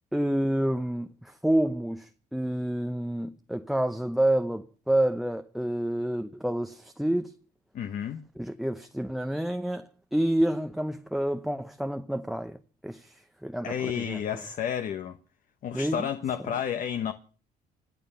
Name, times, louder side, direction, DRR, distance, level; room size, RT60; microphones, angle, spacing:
voice 1, 0.1-7.4 8.4-14.2 15.7-16.1 16.4-16.5, right 1 dB, ahead, 0.7 m, -29 dB
voice 2, 7.7-8.2 13.6-15.2 15.6-17.1, left 8 dB, 50° left, 1.0 m, -31 dB
26.0 x 8.9 x 5.6 m
cardioid pair, 110°, 17 cm